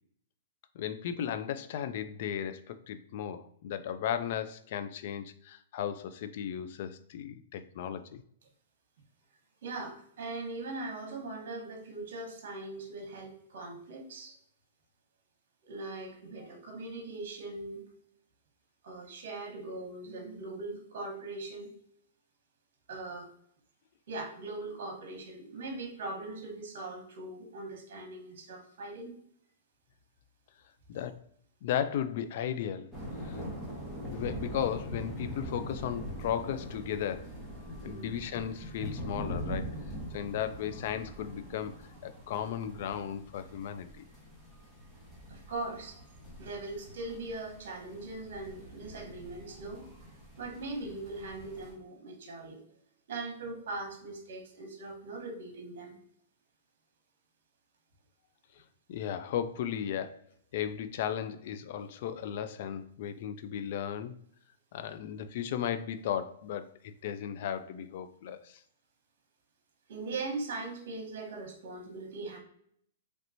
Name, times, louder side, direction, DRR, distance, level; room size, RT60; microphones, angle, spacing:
voice 1, 0.7-8.2 30.9-31.2 31.6-32.9 33.2-33.4 34.0-37.3 37.8-39.7 40.1-41.7 42.0-44.0 58.9-60.2 60.5-64.2 64.7-68.6, left 9 dB, 55° left, 11 dB, 0.3 m, -35 dB
voice 2, 9.6-14.3 15.6-17.8 18.8-21.7 22.9-23.3 24.1-29.2 37.8-38.1 45.3-46.0 46.4-49.9 50.4-52.6 53.1-56.0 69.9-72.4, right 2 dB, 65° right, 3 dB, 1.0 m, -40 dB
sound 1, 32.9-51.7, equal, 5° left, 0.9 m, -43 dB
3.1 x 2.9 x 2.6 m, 0.67 s
hypercardioid pair, 150°, 0 cm